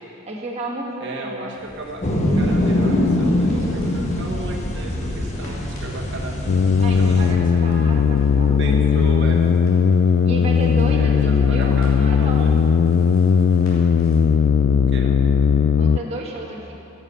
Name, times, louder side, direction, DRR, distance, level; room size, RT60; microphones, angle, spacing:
voice 1, 0.2-1.5 6.8-9.1 10.2-12.6 15.8-16.7, right 1 dB, 30° right, -3 dB, 1.2 m, -31 dB
voice 2, 1.0-2.0 2.3-6.4 6.9-7.8 8.1-9.5 10.9-12.6 14.7-15.2, right 1 dB, 60° right, 0 dB, 1.3 m, -34 dB
sound 1, 1.5-14.2, left 2 dB, 85° left, 3.0 m, -42 dB
sound 2, 2.0-7.3, left 1 dB, 35° left, 1.2 m, -22 dB
sound 3, 6.5-16.0, left 6 dB, 55° left, 0.3 m, -17 dB
14.5 x 7.2 x 5.5 m, 2.9 s
head